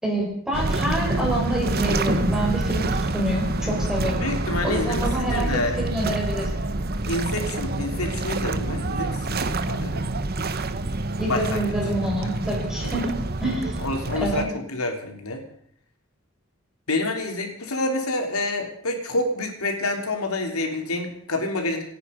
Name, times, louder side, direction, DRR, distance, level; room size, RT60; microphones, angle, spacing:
voice 1, 0.0-4.3 4.6-6.5 11.2-13.1 13.4-13.9 14.2-14.5, right 1 dB, 5° right, -3 dB, 5.6 m, -27 dB
sound 1, 0.5-14.5, right 2 dB, 45° right, 1.1 m, -27 dB
voice 2, 4.2-5.8 7.1-10.0 11.3-11.7 12.8-13.0 13.8-14.4 14.7-15.4 16.9-21.8, left 2 dB, 85° left, 3 dB, 3.5 m, -28 dB
27.5 x 9.8 x 5.4 m, 0.67 s
head